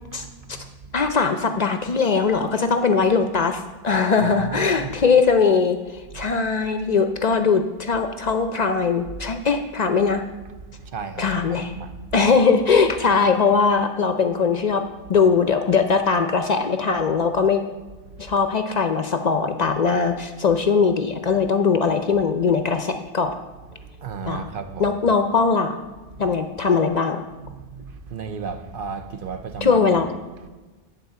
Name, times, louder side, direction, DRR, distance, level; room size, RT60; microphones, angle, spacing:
voice 1, 0.0-1.1 4.2-4.9 6.1-6.3 10.7-12.3 12.7-12.9 18.1-18.4 23.2-23.3 23.7-25.0 26.1-26.4 27.4-30.0 30.4-30.5, right 6 dB, 65° right, 0.8 m, -35 dB
voice 2, 0.9-10.2 11.2-11.7 12.1-17.6 18.2-23.4 24.3-24.4 24.8-25.8 26.2-27.2 29.6-30.1, left 5 dB, 50° left, 0.6 m, -20 dB
10.5 x 4.2 x 6.7 m
omnidirectional pair, 1.0 m